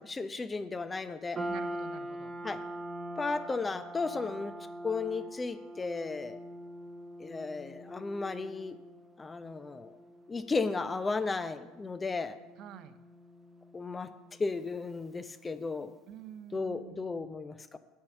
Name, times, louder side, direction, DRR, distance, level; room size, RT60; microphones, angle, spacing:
voice 1, 0.0-1.4 2.4-2.6 3.2-4.5 4.8-6.4 7.2-8.8 9.2-9.9 10.3-12.4 13.7-14.1 14.4-15.9 16.5-17.8, left 4 dB, 20° left, 12 dB, 0.6 m, -34 dB
sound 1, 1.3-15.8, right 1 dB, 15° right, 0.8 m, -44 dB
voice 2, 1.5-2.3 12.6-13.0 16.1-17.4, right 10 dB, 50° right, 13 dB, 0.6 m, -48 dB
8.7 x 5.5 x 5.9 m, 1.1 s
figure-of-eight pair, 70°, 0 cm